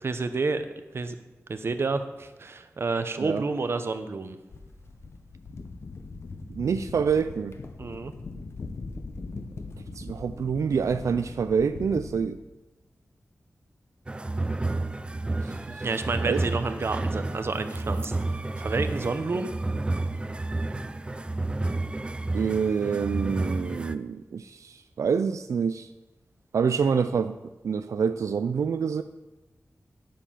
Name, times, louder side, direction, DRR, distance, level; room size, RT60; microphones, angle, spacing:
voice 1, 0.0-0.7 0.9-1.1 1.5-4.4 7.8-8.1 15.8-19.5, right 3 dB, 50° right, 9 dB, 0.7 m, -30 dB
sound 1, 4.5-12.3, left 3 dB, 55° left, 0.9 m, -40 dB
voice 2, 6.5-7.6 10.0-12.4 15.4-15.9 16.3-16.4 22.3-25.9 26.5-27.4 27.6-29.0, right 6 dB, 85° right, 10 dB, 0.3 m, -27 dB
sound 2, 14.1-24.0, right 2 dB, 20° right, 0.4 m, -30 dB
8.8 x 7.5 x 5.7 m, 1.1 s
wide cardioid pair, 125°, 5 cm